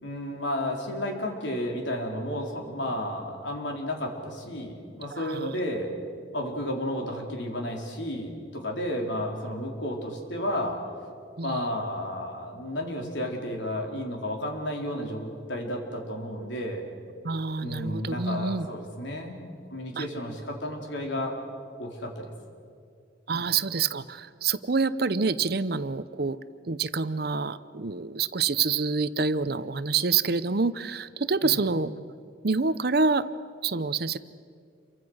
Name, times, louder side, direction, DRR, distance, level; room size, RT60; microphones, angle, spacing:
voice 1, 0.0-5.9 6.3-10.8 11.4-16.8 17.6-19.4 19.7-21.4 21.8-22.3 23.3-23.4 31.4-31.6, left 1 dB, 75° left, 1 dB, 4.1 m, -32 dB
voice 2, 5.1-5.5 11.4-11.6 17.2-18.7 20.0-20.1 23.3-26.4 26.7-31.9 32.4-33.3 33.6-34.2, right 4 dB, 55° right, 14 dB, 0.7 m, -27 dB
28.5 x 24.0 x 6.4 m, 2.3 s
head